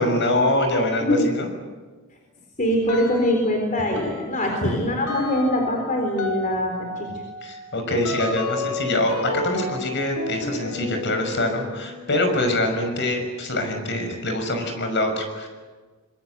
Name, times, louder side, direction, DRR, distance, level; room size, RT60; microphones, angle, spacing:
voice 1, 0.0-1.5 4.6-4.8 7.4-15.5, left 1 dB, 55° left, 5 dB, 6.1 m, -24 dB
voice 2, 2.6-7.1, left 1 dB, 35° left, 2 dB, 4.0 m, -23 dB
sound 1, 2.9-3.6 4.0-14.3, left 2 dB, 90° left, 5.4 m, -33 dB
25.5 x 24.0 x 8.2 m, 1.4 s
head